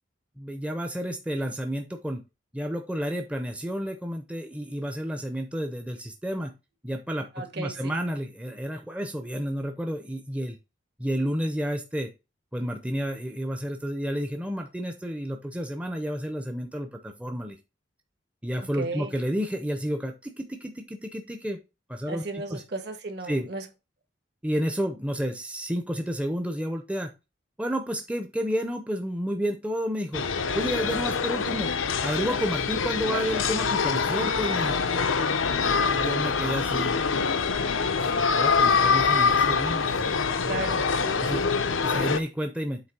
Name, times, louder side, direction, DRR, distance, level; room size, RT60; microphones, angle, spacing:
voice 1, 0.4-2.2 2.5-6.5 6.8-10.6 11.0-12.1 12.5-17.6 18.4-21.6 21.9-22.6 23.3-23.5 24.4-27.1 27.6-30.2 30.5-31.7 32.0-34.8 35.8-37.0 38.0-40.7 41.2-41.4 41.8-42.8, equal, 5° right, 0.6 m, -31 dB
voice 2, 7.3-8.0 18.8-19.1 22.1-23.7 35.6-35.9 40.4-41.3, right 3 dB, 55° right, 1.5 m, -35 dB
sound 1, 30.1-42.2, left 5 dB, 85° left, 0.7 m, -25 dB
8.0 x 3.2 x 6.0 m
head